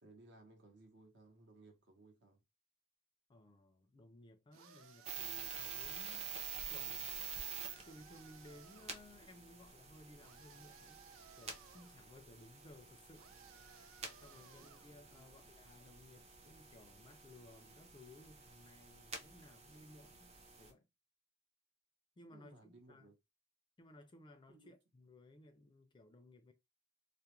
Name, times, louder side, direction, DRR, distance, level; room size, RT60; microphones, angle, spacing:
voice 1, 0.0-2.4 14.6-14.7 15.1-15.4 22.3-23.1 24.5-24.7, right 2 dB, 65° right, 0.9 m, -62 dB
voice 2, 3.3-6.3 6.7-7.3 7.8-11.0 11.4-13.3 13.6-20.3 20.6-20.8 22.2-23.1 23.8-26.5, left 1 dB, 25° left, 0.4 m, -60 dB
sound 1, 4.5-6.1 7.2-9.0 10.2-12.0 13.1-15.0, right 7 dB, 85° right, 0.4 m, -61 dB
sound 2, 5.1-20.7, right 5 dB, 30° right, 0.5 m, -49 dB
2.3 x 2.0 x 2.9 m
head